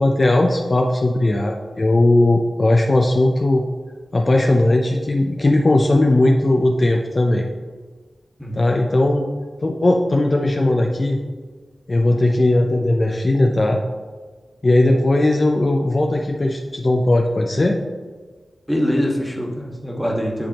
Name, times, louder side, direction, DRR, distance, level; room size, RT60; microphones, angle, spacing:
voice 1, 0.0-3.6 4.1-7.5 8.5-9.3 9.6-11.2 11.9-13.8 14.6-17.8, left 2 dB, 40° left, 1 dB, 0.5 m, -17 dB
voice 2, 8.4-8.7 18.7-20.5, equal, ahead, -1 dB, 1.5 m, -23 dB
10.0 x 3.4 x 2.9 m, 1.4 s
cardioid pair, 50°, 0 cm